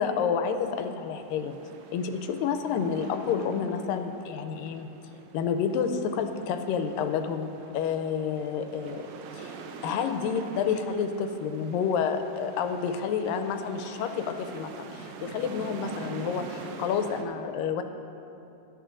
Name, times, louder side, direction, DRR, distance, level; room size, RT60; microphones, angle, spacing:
voice 1, 0.0-1.6 1.9-4.9 5.3-7.5 7.7-9.1 9.3-9.5 9.8-17.8, left 6 dB, 85° left, 7 dB, 2.3 m, -29 dB
sound 1, 0.6-17.2, right 5 dB, 90° right, 2.5 m, -45 dB
17.0 x 11.5 x 2.5 m, 2.8 s
omnidirectional pair, 3.9 m